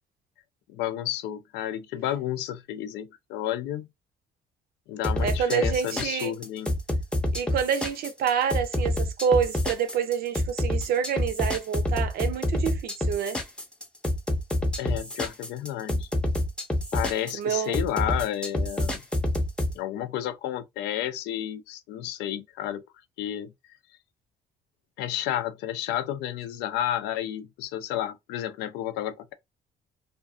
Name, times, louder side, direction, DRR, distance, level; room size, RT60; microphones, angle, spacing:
voice 1, 0.7-3.9 4.9-6.7 14.8-16.1 16.9-19.0 19.7-22.8 23.2-23.5 25.0-29.3, left 12 dB, 85° left, 0.4 m, -31 dB
sound 1, 5.0-19.7, left 1 dB, 5° left, 0.5 m, -27 dB
voice 2, 5.2-6.3 7.3-13.4 17.4-17.8, right 7 dB, 65° right, 0.6 m, -27 dB
2.5 x 2.4 x 2.4 m
cardioid pair, 110°, 17 cm